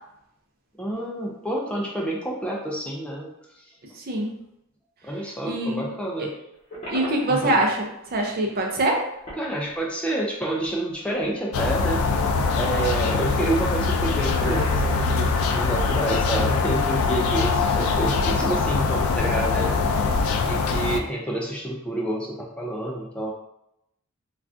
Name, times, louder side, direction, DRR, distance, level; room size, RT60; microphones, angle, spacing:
voice 1, 0.8-3.7 5.0-6.3 7.3-7.6 9.4-12.0 12.6-20.1 20.5-23.3, right 1 dB, 5° left, -3 dB, 0.4 m, -28 dB
voice 2, 4.0-4.3 5.4-5.9 6.9-9.1, right 1 dB, 45° right, 1 dB, 0.5 m, -24 dB
Monster with digestive problems, 6.7-7.8 8.0-8.1 8.7-8.8 9.0-10.1 10.6-11.7 12.0-12.5 12.9-13.2 13.6-16.5 16.8-17.6, equal, 30° left, 1.1 m, -39 dB
sound 1, 11.5-21.0, left 4 dB, 80° left, 0.3 m, -23 dB
3.5 x 2.4 x 2.4 m, 0.82 s
head